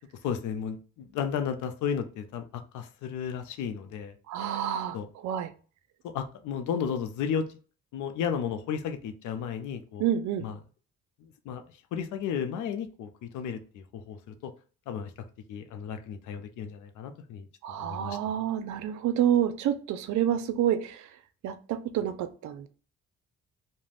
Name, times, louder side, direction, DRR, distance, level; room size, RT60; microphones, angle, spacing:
voice 1, 0.2-4.1 4.9-5.1 6.0-7.6 7.9-10.1 10.4-10.5 11.2-11.6 11.9-14.5 14.9-15.1 15.5-17.5 17.8-18.2, left 7 dB, 80° left, 8 dB, 0.5 m, -33 dB
voice 2, 4.3-5.0 5.2-5.5 10.0-10.4 17.6-21.1 21.4-22.7, right 10 dB, 70° right, 10 dB, 0.5 m, -28 dB
2.4 x 2.1 x 3.2 m, 0.39 s
cardioid pair, 90°, 30 cm